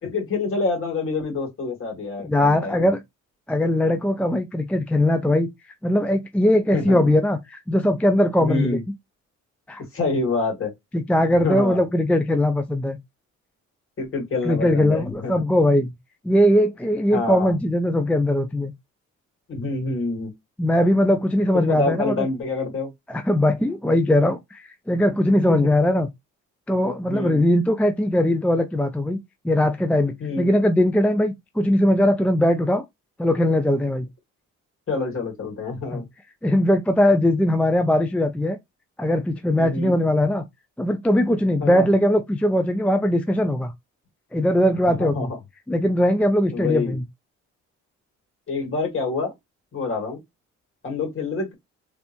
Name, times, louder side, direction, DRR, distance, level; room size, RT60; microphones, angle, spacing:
voice 1, 0.0-2.9 6.7-7.1 8.4-8.8 9.9-10.7 11.4-11.8 14.0-15.3 17.1-17.6 19.5-20.3 21.5-22.9 25.5-25.8 27.1-27.4 30.2-30.5 34.9-36.0 39.6-40.0 41.6-41.9 44.8-45.3 46.5-47.0 48.5-49.3 49.7-50.2 50.8-51.5, left 3 dB, 45° left, 2.1 m, -27 dB
voice 2, 2.2-3.0 3.5-5.5 5.8-8.8 9.7-9.8 10.9-13.0 14.4-15.9 16.2-18.7 20.6-22.3 23.1-26.1 26.7-29.2 29.4-32.8 33.2-34.1 35.9-36.0 36.4-38.6 39.0-40.4 40.8-43.7 44.3-45.3 45.7-47.0, left 1 dB, 5° left, 0.4 m, -20 dB
3.4 x 2.9 x 2.5 m
cardioid pair, 90°, 30 cm